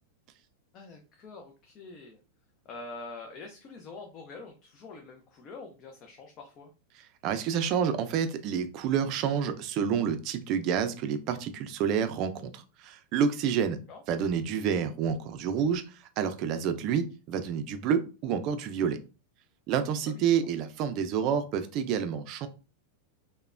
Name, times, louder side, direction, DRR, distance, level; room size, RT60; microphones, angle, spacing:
voice 1, 0.7-2.2 2.6-6.7 13.9-14.0 20.1-20.3, left 3 dB, 30° left, 3 dB, 0.4 m, -45 dB
voice 2, 7.2-13.8 14.1-15.8 16.2-19.0 19.7-22.5, right 7 dB, 40° right, 9 dB, 0.4 m, -28 dB
3.0 x 2.1 x 2.4 m, 0.33 s
supercardioid pair, 150°, 0 cm